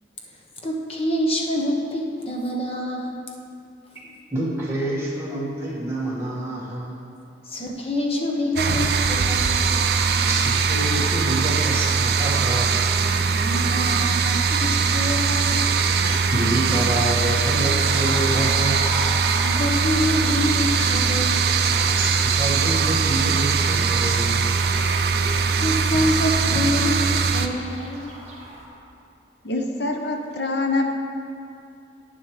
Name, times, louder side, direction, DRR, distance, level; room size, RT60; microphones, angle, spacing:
voice 1, 0.6-3.2 7.5-9.8 13.3-15.7 19.4-21.6 25.6-28.1, left 1 dB, 30° left, 0 dB, 1.0 m, -26 dB
voice 2, 4.3-7.0 10.0-12.8 15.6-19.0 21.7-24.8, right 1 dB, 15° right, -7 dB, 1.7 m, -28 dB
sound 1, 8.6-27.5, right 5 dB, 55° right, 0.5 m, -21 dB
sound 2, 15.6-28.7, right 1 dB, 35° right, 1.9 m, -38 dB
voice 3, 29.4-30.9, left 2 dB, 65° left, 3 dB, 0.8 m, -25 dB
11.0 x 9.4 x 3.2 m, 2.5 s
head